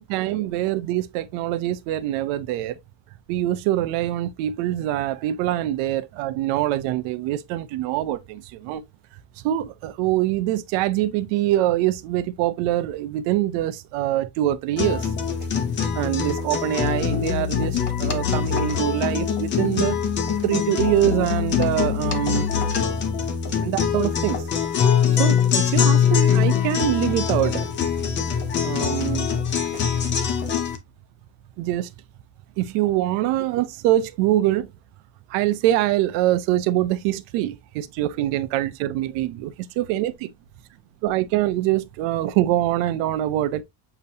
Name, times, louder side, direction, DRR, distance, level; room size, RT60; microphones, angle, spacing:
voice 1, 0.0-2.8 3.3-8.8 9.4-15.0 15.9-20.0 20.4-22.5 23.6-24.4 25.2-27.7 28.6-29.3 31.6-31.9 32.6-34.7 35.3-40.3 41.0-43.6, right 13 dB, 70° right, 0.7 m, -24 dB
sound 1, 14.8-30.8, left 8 dB, 25° left, 0.4 m, -23 dB
6.8 x 2.9 x 2.7 m
cardioid pair, 180°, 47 cm